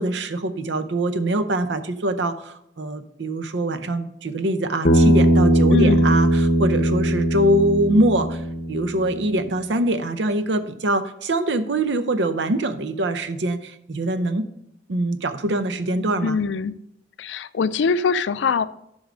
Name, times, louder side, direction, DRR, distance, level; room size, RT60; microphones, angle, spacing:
voice 1, 0.0-8.4 8.7-14.5 14.9-16.4, right 1 dB, 75° right, 11 dB, 0.7 m, -23 dB
Bass guitar, 4.8-9.2, right 1 dB, 50° left, 0.9 m, -19 dB
voice 2, 5.7-6.1 16.2-16.8 17.2-18.6, left 5 dB, 90° left, 15 dB, 0.4 m, -22 dB
8.0 x 5.5 x 5.0 m, 0.79 s
head